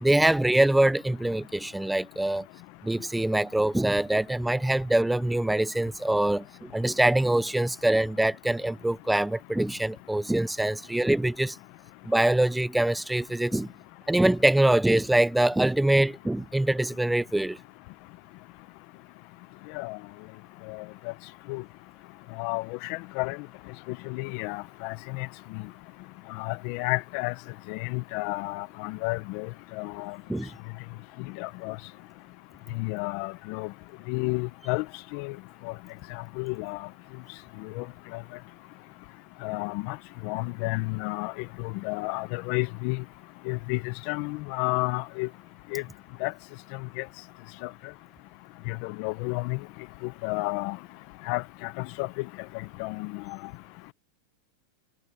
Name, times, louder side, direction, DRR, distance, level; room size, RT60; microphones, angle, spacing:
voice 1, 0.0-2.5 2.8-11.6 12.1-13.7 14.1-17.6 30.3-30.5, right 1 dB, 5° right, 0.6 m, -24 dB
voice 2, 22.4-23.4 23.9-25.3 25.5-25.6 26.3-27.3 27.7-29.5 29.8-30.2 31.4-31.8 32.7-33.7 34.1-34.8 35.1-35.3 35.6-35.7 36.1-36.8 37.8-37.9 38.1-38.2 39.4-40.0 40.2-41.3 41.6-43.0 43.5-45.3 45.7-45.8 46.2-46.3 47.0-47.1 48.7-49.6 50.0-50.8 51.3-52.2 52.8-53.4, left 24 dB, 50° left, 0.9 m, -31 dB
supercardioid pair, 145°, 0 cm